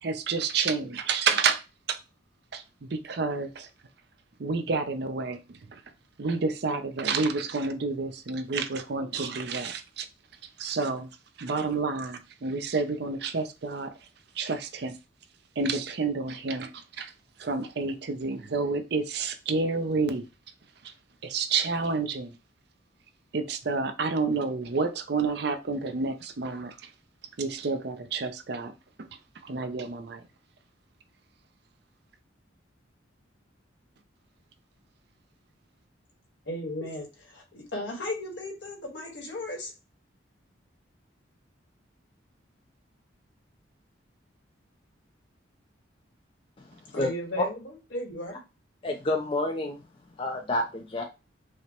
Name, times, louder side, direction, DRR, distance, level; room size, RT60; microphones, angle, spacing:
voice 1, 0.0-1.6 1.9-2.0 2.5-3.7 4.4-5.8 6.2-10.1 10.6-11.1 11.4-13.9 14.4-15.0 15.6-16.7 17.0-17.1 17.4-20.3 20.8-20.9 21.2-22.3 23.3-26.9 27.4-28.7 29.4-30.2, right 4 dB, 55° right, 0.5 m, -29 dB
voice 2, 36.4-39.7 46.9-48.4, left 1 dB, 75° left, 1.5 m, -35 dB
voice 3, 46.6-47.1 47.4-47.5 48.8-49.8 50.2-51.0, left 2 dB, 25° left, 0.4 m, -29 dB
4.9 x 2.1 x 2.9 m
head